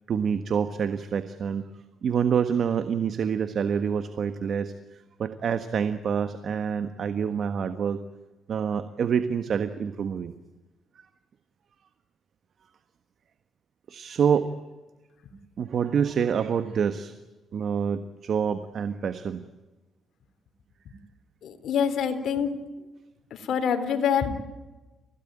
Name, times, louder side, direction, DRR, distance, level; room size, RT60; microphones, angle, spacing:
voice 1, 0.1-1.7 2.0-4.7 5.2-8.0 8.5-10.3 13.9-14.5 15.6-17.1 17.5-19.4, right 7 dB, 60° right, 10 dB, 1.4 m, -27 dB
voice 2, 21.4-22.6 23.3-24.3, left 7 dB, 70° left, 7 dB, 3.8 m, -26 dB
30.0 x 17.0 x 9.1 m, 1.2 s
cardioid pair, 90°, 0 cm